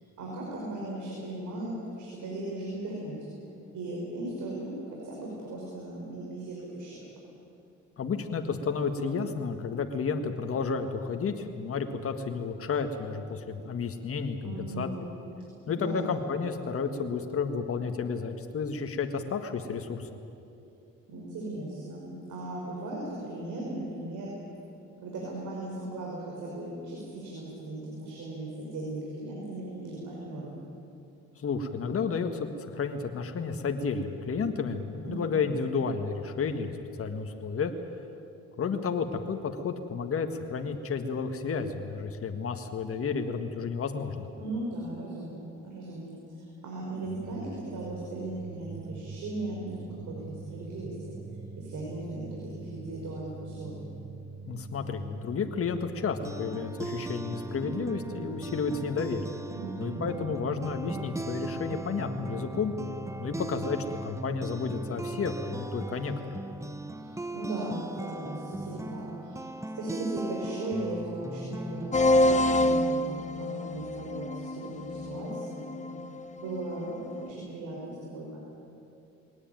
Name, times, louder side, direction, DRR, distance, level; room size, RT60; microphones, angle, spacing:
voice 1, 0.2-3.2 3.7-7.0 14.4-15.1 15.6-16.1 21.1-24.3 25.0-30.7 35.0-35.4 44.4-51.1 51.6-53.9 59.5-60.2 67.0-69.4 69.8-75.7 76.4-78.4, right 2 dB, 75° right, -3 dB, 5.4 m, -37 dB
voice 2, 8.0-14.9 15.7-20.1 31.4-37.7 38.6-44.3 54.5-59.3 59.8-62.7 63.2-66.4, left 5 dB, 50° left, 5 dB, 1.8 m, -31 dB
sound 1, 47.0-66.0, right 4 dB, 60° right, 3.9 m, -44 dB
sound 2, 56.0-72.9, right 2 dB, 10° right, 0.9 m, -39 dB
sound 3, 71.9-77.3, left 1 dB, 25° left, 1.1 m, -27 dB
21.5 x 18.0 x 9.3 m, 2.7 s
cardioid pair, 90°, 30 cm